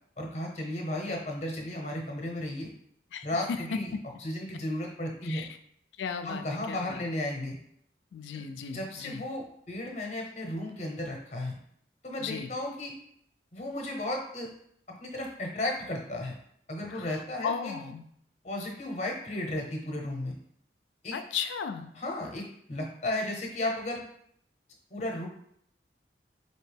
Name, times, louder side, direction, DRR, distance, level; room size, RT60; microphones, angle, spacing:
voice 1, 0.2-2.7 3.2-3.9 4.2-5.5 6.2-7.6 8.3-8.4 8.7-11.6 12.0-12.9 13.5-14.5 15.0-16.3 16.7-17.7 18.4-20.4 21.0-21.1 21.9-24.0 24.9-25.3, left 1 dB, 40° left, 1 dB, 0.7 m, -34 dB
voice 2, 3.1-3.8 5.2-5.5 6.0-7.0 8.1-9.2 12.2-12.5 16.9-18.0 21.1-21.9, left 6 dB, 85° left, 8 dB, 0.3 m, -36 dB
4.2 x 2.8 x 3.3 m, 0.69 s
head